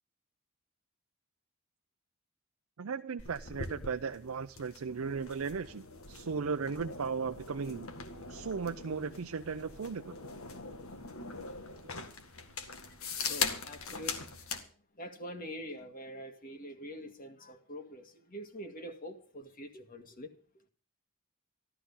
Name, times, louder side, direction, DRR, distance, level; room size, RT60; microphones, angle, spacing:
voice 1, 2.8-7.9 8.3-10.2, right 5 dB, 90° right, 0.5 m, -36 dB
sound 1, 3.2-14.6, left 5 dB, 85° left, 2.0 m, -41 dB
voice 2, 13.3-14.3 15.0-20.3, equal, 40° left, 1.9 m, -45 dB
14.0 x 13.0 x 5.6 m
head